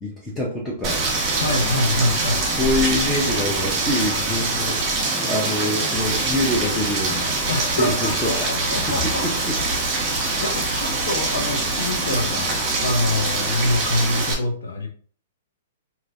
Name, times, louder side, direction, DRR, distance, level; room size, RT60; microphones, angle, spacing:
voice 1, 0.0-1.1 2.5-7.3 7.7-8.5 9.0-9.6, left 1 dB, 10° left, -4 dB, 0.8 m, -26 dB
Rain, 0.8-14.3, right 2 dB, 30° right, 1.5 m, -24 dB
voice 2, 1.4-2.4 7.5-9.3 10.4-12.5 12.8-14.9, left 2 dB, 85° left, 1 dB, 0.8 m, -25 dB
3.2 x 2.9 x 2.6 m, 0.44 s
hypercardioid pair, 140°, 0 cm